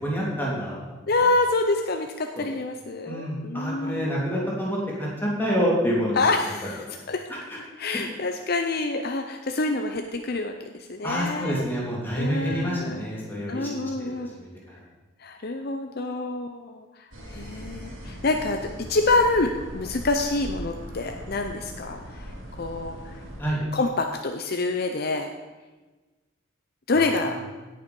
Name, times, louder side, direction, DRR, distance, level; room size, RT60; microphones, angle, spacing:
voice 1, 0.0-0.9 2.4-2.5 3.1-6.2 7.3-7.6 7.9-8.0 11.0-13.7 14.0-14.8 23.4-23.6 26.9-27.4, equal, 10° left, -5 dB, 3.1 m, -28 dB
voice 2, 1.1-4.1 6.2-7.2 7.8-11.6 12.2-13.0 13.5-14.5 15.2-22.3 22.6-23.2 23.7-25.3 26.9-27.3, left 3 dB, 50° left, 5 dB, 0.7 m, -27 dB
sound 1, 17.1-23.4, equal, 80° right, 3.0 m, -39 dB
17.0 x 6.9 x 5.4 m, 1.2 s
head